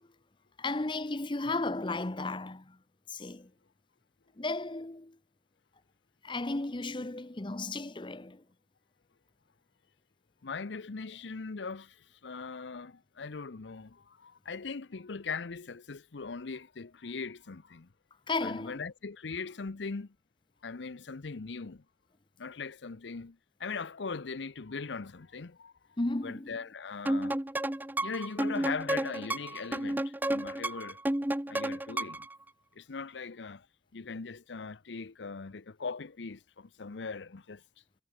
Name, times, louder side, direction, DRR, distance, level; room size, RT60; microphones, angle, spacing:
voice 1, 0.6-2.8 3.1-3.5 4.4-5.2 6.2-8.4 18.3-18.8 26.0-26.6, left 2 dB, 25° left, 0.8 m, -34 dB
voice 2, 10.4-17.9 18.4-20.1 20.6-21.8 22.4-25.7 26.2-27.4 28.0-31.0 31.5-32.3 32.8-33.7 33.9-37.6, left 4 dB, 85° left, 0.7 m, -40 dB
sound 1, 27.1-32.3, right 1 dB, 10° right, 0.7 m, -32 dB
head